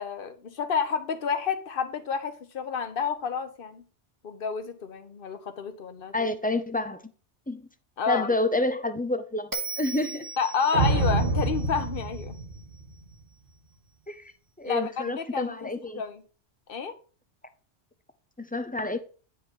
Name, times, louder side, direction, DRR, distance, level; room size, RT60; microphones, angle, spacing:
voice 1, 0.0-3.8 4.2-6.3 8.0-8.3 10.4-12.3 14.6-16.2 16.7-16.9, left 6 dB, 55° left, 1.1 m, -30 dB
voice 2, 6.1-7.0 7.5-7.7 8.1-10.3 14.1-14.3 14.6-16.0 18.4-19.0, left 2 dB, 10° left, 0.5 m, -28 dB
Bell, 9.5-12.8, right 3 dB, 20° right, 1.0 m, -39 dB
sound 1, 10.7-13.2, right 2 dB, 55° right, 1.6 m, -27 dB
9.4 x 5.2 x 4.5 m
omnidirectional pair, 1.2 m